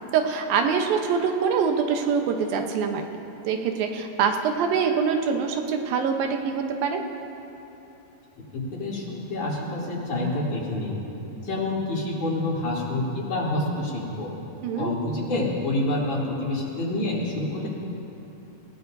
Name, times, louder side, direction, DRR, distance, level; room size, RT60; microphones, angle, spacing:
voice 1, 0.1-7.0 14.6-14.9, right 6 dB, 85° right, 4 dB, 2.8 m, -24 dB
voice 2, 8.5-11.0 11.4-14.3 14.8-17.7, left 2 dB, 60° left, -6 dB, 4.3 m, -27 dB
28.0 x 17.0 x 2.7 m, 3.0 s
omnidirectional pair, 4.0 m